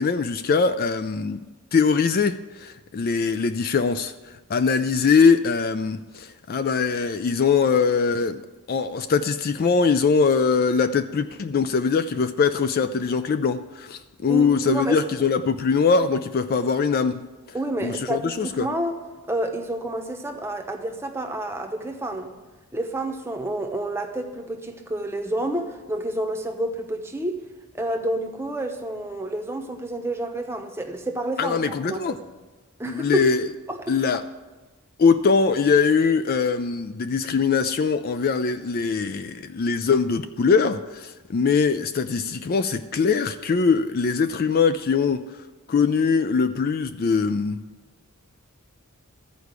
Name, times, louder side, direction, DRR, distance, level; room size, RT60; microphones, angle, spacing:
voice 1, 0.0-1.4 1.7-4.1 4.5-8.4 8.7-17.3 17.8-18.7 31.4-32.2 32.8-33.5 33.9-34.2 35.0-45.3 45.7-47.6, left 5 dB, 40° left, 0.3 m, -22 dB
voice 2, 14.3-15.0 17.5-19.0 19.3-22.3 22.7-27.4 27.7-32.3 32.8-33.3 33.7-34.2, right 1 dB, 10° right, 0.8 m, -29 dB
13.5 x 4.8 x 8.1 m
head